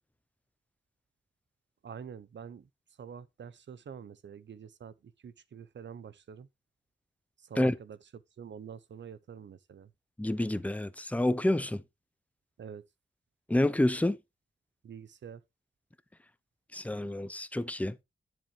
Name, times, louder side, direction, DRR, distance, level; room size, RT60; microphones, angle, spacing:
voice 1, 1.8-2.7 3.0-6.5 7.4-8.0 8.4-9.9 12.6-12.8 14.8-15.4, right 7 dB, 70° right, 0.8 m, -46 dB
voice 2, 10.2-11.8 13.5-14.2 16.7-17.9, left 1 dB, 5° left, 0.7 m, -28 dB
10.0 x 7.5 x 3.2 m
wide cardioid pair, 120°, 19 cm